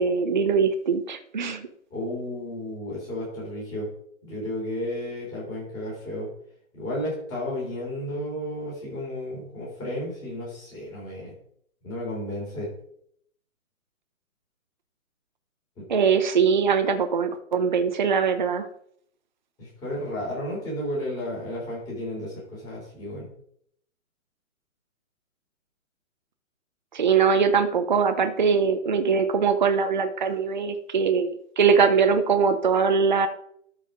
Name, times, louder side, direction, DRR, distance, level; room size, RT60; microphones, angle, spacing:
voice 1, 0.0-1.7 15.9-18.7 26.9-33.3, right 6 dB, 35° right, 7 dB, 0.8 m, -22 dB
voice 2, 1.9-3.9 4.2-6.3 6.7-11.3 11.8-12.7 19.6-23.3, left 1 dB, 10° left, -5 dB, 3.5 m, -33 dB
12.5 x 5.0 x 5.0 m, 0.66 s
hypercardioid pair, 170°, 41 cm